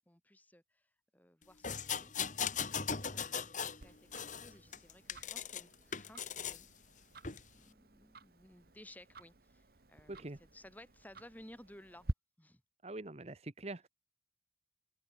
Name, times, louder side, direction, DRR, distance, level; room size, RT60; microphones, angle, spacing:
voice 1, 0.0-6.7 7.5-12.1 12.4-12.6, left 1 dB, 10° left, 4.2 m, -58 dB
sound 1, 1.6-3.8 4.1-5.6 5.9-6.6 7.2-7.4, left 7 dB, 45° left, 1.7 m, -38 dB
Tick-tock, 3.8-12.1, right 1 dB, 55° right, 1.4 m, -49 dB
voice 2, 12.8-13.9, right 2 dB, 35° right, 1.0 m, -44 dB
open air
head